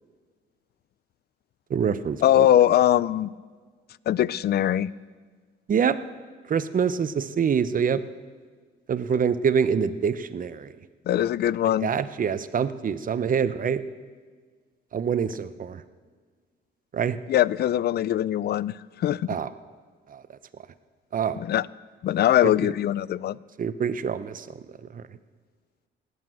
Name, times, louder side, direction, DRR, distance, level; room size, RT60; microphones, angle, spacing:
voice 1, 1.7-2.5 5.7-6.0 6.5-8.0 8.9-10.7 11.8-13.8 14.9-15.8 16.9-17.2 19.3-19.5 20.1-20.2 21.1-21.4 22.4-22.5 23.6-24.6 24.9-25.0, right 7 dB, 45° right, 13 dB, 0.8 m, -25 dB
voice 2, 2.2-3.3 4.1-4.9 11.1-11.9 17.3-19.3 21.4-21.7 22.0-23.4, left 12 dB, 55° left, 21 dB, 0.4 m, -22 dB
19.0 x 8.2 x 7.7 m, 1.5 s
cardioid pair, 90°, 20 cm